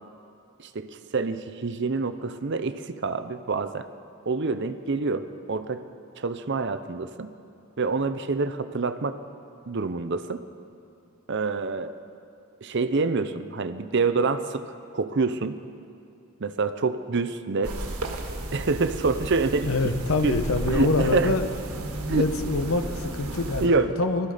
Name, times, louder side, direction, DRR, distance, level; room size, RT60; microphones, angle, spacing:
voice 1, 0.6-3.9 4.3-5.8 6.2-7.3 7.8-9.2 9.7-10.4 11.3-12.0 12.6-15.5 16.4-17.8 18.5-19.7 20.2-20.4 20.7-21.3 22.1-22.2 23.6-24.0, right 4 dB, 50° right, 11 dB, 0.6 m, -26 dB
sound 1, 17.6-23.7, right 1 dB, 85° right, 1.6 m, -33 dB
voice 2, 19.7-21.5 22.1-24.3, left 2 dB, 65° left, 7 dB, 1.1 m, -25 dB
21.0 x 13.0 x 5.0 m, 2.7 s
head